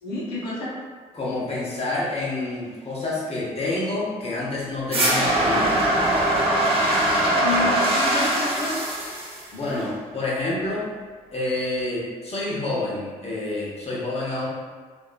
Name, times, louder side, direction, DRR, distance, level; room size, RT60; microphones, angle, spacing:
voice 1, 0.0-0.7 7.4-8.8, left 3 dB, 80° left, -7 dB, 0.8 m, -29 dB
voice 2, 1.1-5.8 9.5-10.9 11.3-14.5, left 2 dB, 35° left, -6 dB, 1.1 m, -28 dB
sound 1, 4.9-9.9, right 1 dB, 35° right, 0.8 m, -22 dB
2.9 x 2.5 x 2.2 m, 1.5 s
hypercardioid pair, 45°, 17 cm